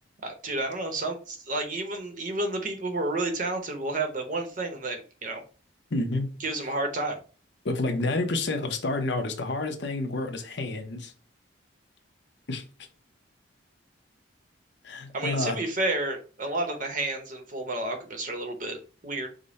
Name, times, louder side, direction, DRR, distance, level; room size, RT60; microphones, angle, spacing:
voice 1, 0.2-5.4 6.4-7.2 15.1-19.3, right 2 dB, 40° right, 0.8 m, -31 dB
voice 2, 5.9-6.4 7.6-11.1 12.5-12.7 14.8-15.6, left 2 dB, 60° left, 0.8 m, -29 dB
5.1 x 2.1 x 4.0 m
head